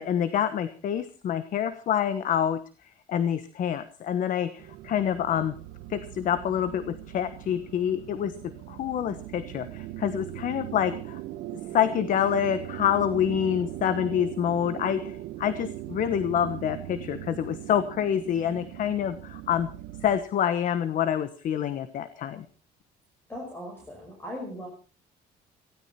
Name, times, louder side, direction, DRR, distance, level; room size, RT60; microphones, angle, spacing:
voice 1, 0.0-2.6 3.1-5.5 5.9-8.3 8.7-11.2 11.7-19.7 20.0-22.4, left 9 dB, 50° left, 12 dB, 1.2 m, -27 dB
sound 1, 4.6-20.2, right 15 dB, 85° right, 1.4 m, -39 dB
voice 2, 23.3-24.7, equal, 15° left, 0 dB, 5.4 m, -38 dB
18.5 x 16.5 x 4.4 m, 0.37 s
cardioid pair, 160°, 18 cm